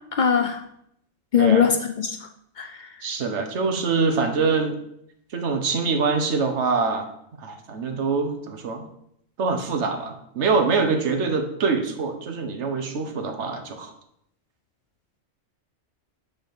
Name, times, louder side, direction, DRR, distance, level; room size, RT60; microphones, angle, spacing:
voice 1, 0.1-0.6 1.3-2.2 2.6-2.9, left 7 dB, 55° left, 6 dB, 0.6 m, -21 dB
voice 2, 1.4-1.7 3.0-4.8 5.3-7.0 7.4-8.8 9.4-13.9, right 4 dB, 70° right, 6 dB, 1.2 m, -24 dB
6.5 x 4.0 x 6.5 m, 0.73 s
omnidirectional pair, 1.2 m